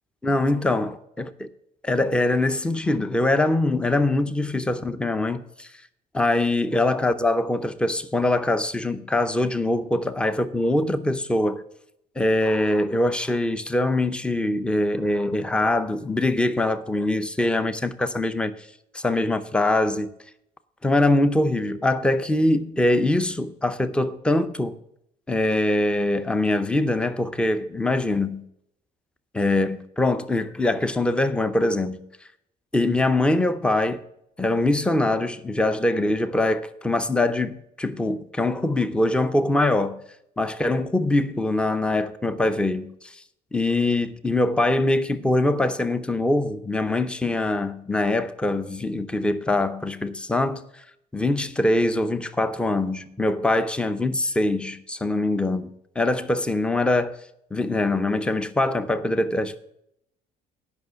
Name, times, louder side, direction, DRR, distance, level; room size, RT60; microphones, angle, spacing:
voice 1, 0.2-1.5 1.8-5.7 6.1-11.6 12.2-18.5 18.9-20.1 20.8-24.8 25.3-28.4 29.3-32.0 32.7-34.0 34.4-40.0 40.4-43.1 43.5-50.6 51.1-57.2 57.5-59.6, left 2 dB, 5° left, 0.6 m, -23 dB
9.3 x 5.7 x 8.0 m
cardioid pair, 110°, 17 cm